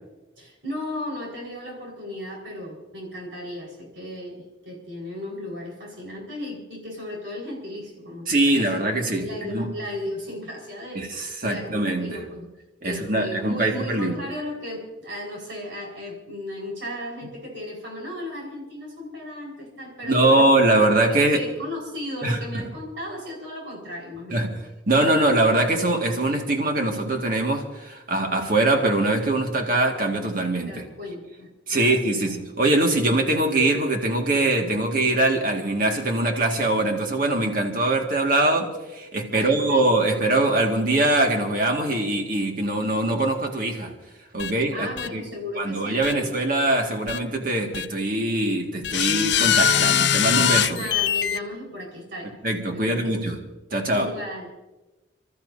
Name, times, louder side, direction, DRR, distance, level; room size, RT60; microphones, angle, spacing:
voice 1, 0.4-12.5 12.8-20.5 21.1-24.4 30.7-32.0 39.2-40.0 44.7-46.3 50.7-52.4 52.7-53.3 53.8-54.5, left 1 dB, 90° right, -3 dB, 4.9 m, -35 dB
voice 2, 8.3-9.7 11.0-12.2 12.8-14.2 20.0-21.4 22.2-22.6 24.3-24.5 24.9-30.9 31.7-43.9 44.3-45.3 45.6-50.9 52.4-53.4 53.7-54.1, right 2 dB, 50° right, 2 dB, 2.0 m, -22 dB
sound 1, 44.4-44.5 45.0-45.1 46.0-46.1 47.1-47.2 47.7-47.9 48.8-51.4, left 8 dB, 70° left, 0.5 m, -21 dB
30.0 x 13.5 x 2.8 m, 1.1 s
head